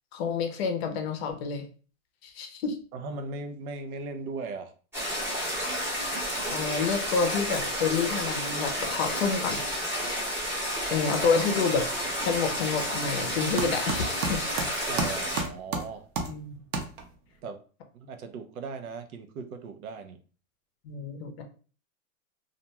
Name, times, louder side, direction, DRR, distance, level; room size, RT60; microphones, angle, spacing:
voice 1, 0.1-1.6 2.2-2.8 6.5-9.6 10.0-10.4 10.9-11.9 12.2-14.5 16.3-16.6 20.8-21.4, left 5 dB, 50° left, 5 dB, 0.6 m, -28 dB
voice 2, 2.9-4.7 14.9-16.1 17.4-17.6 17.9-20.2, right 4 dB, 85° right, 8 dB, 0.6 m, -38 dB
sound 1, 4.9-15.4, equal, 5° right, 0.7 m, -31 dB
sound 2, 11.7-17.4, right 4 dB, 40° right, 0.5 m, -35 dB
2.4 x 2.2 x 2.8 m, 0.39 s
hypercardioid pair, 140°, 42 cm